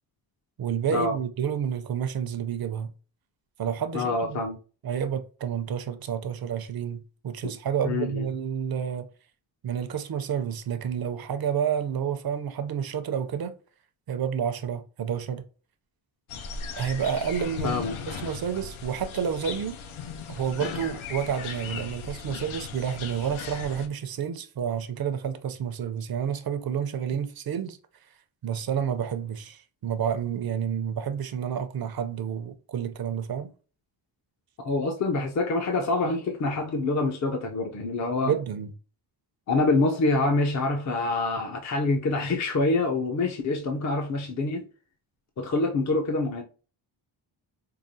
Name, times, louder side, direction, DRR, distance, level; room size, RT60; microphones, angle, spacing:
voice 1, 0.6-2.9 3.6-4.4 4.8-9.1 9.6-13.5 14.1-15.5 16.8-19.8 20.3-27.8 28.4-33.5 38.3-38.7, right 8 dB, 50° right, 0.6 m, -30 dB
voice 2, 3.9-4.6 7.4-7.5 7.8-8.3 17.6-18.0 34.6-38.3 39.5-44.6 45.4-46.4, left 3 dB, 40° left, 0.5 m, -26 dB
sound 1, 16.3-23.9, left 6 dB, 90° left, 0.7 m, -37 dB
4.8 x 2.3 x 2.6 m
wide cardioid pair, 140°, 47 cm